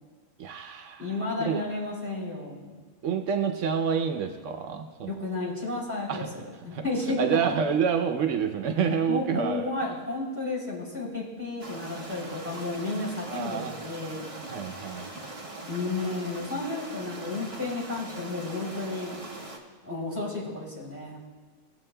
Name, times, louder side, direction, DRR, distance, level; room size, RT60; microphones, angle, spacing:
voice 1, 0.4-1.1 1.4-1.6 3.0-5.1 6.1-6.3 6.7-6.8 7.2-9.7 13.3-13.7 14.5-15.2, right 7 dB, 85° right, 5 dB, 1.0 m, -28 dB
voice 2, 1.0-2.8 5.1-7.5 9.1-14.3 15.7-19.1 19.8-21.2, left 2 dB, 10° right, -5 dB, 3.1 m, -32 dB
sound 1, 11.6-19.6, right 2 dB, 30° right, 1.2 m, -41 dB
18.0 x 7.9 x 2.2 m, 1.5 s
omnidirectional pair, 1.3 m